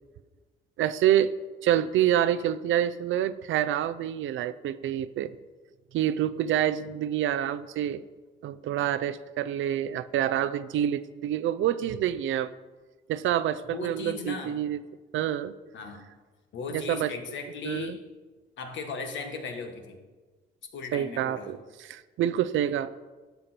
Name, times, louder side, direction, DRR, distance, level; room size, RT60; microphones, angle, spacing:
voice 1, 0.8-1.3 1.6-5.3 5.9-8.0 8.4-12.5 13.1-14.8 15.1-15.5 16.7-17.1 17.6-18.0 20.9-21.6 21.9-22.9, right 11 dB, 75° right, 13 dB, 0.6 m, -27 dB
voice 2, 13.7-14.5 15.7-16.0 16.5-18.0 18.6-20.0 20.7-21.5, left 4 dB, 70° left, 5 dB, 1.6 m, -37 dB
12.0 x 7.0 x 4.4 m, 1.3 s
cardioid pair, 90°, 20 cm